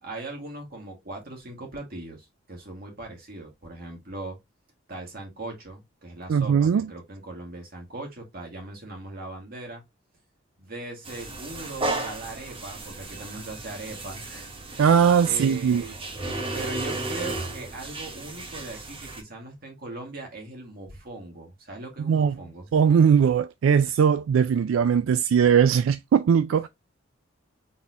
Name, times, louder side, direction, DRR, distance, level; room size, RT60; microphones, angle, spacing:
voice 1, 0.0-4.4 4.9-9.8 10.6-14.8 15.2-15.9 16.5-22.7, right 2 dB, 50° right, 1.9 m, -39 dB
voice 2, 6.3-6.9 14.8-15.9 22.1-22.3 22.7-26.7, right 7 dB, 90° right, 0.3 m, -20 dB
sound 1, 11.1-19.2, right 2 dB, 30° right, 1.0 m, -34 dB
4.1 x 3.6 x 2.6 m
head